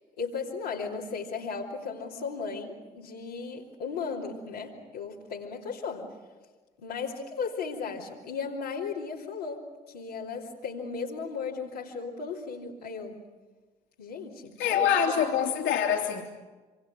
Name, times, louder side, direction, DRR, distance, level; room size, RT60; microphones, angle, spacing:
voice 1, 0.2-6.1 6.8-13.2 14.0-15.1, left 5 dB, 90° left, -5 dB, 3.1 m, -36 dB
voice 2, 14.6-16.2, left 8 dB, 75° left, 1 dB, 3.0 m, -25 dB
27.0 x 26.5 x 6.4 m, 1.3 s
hypercardioid pair, 40°, 20 cm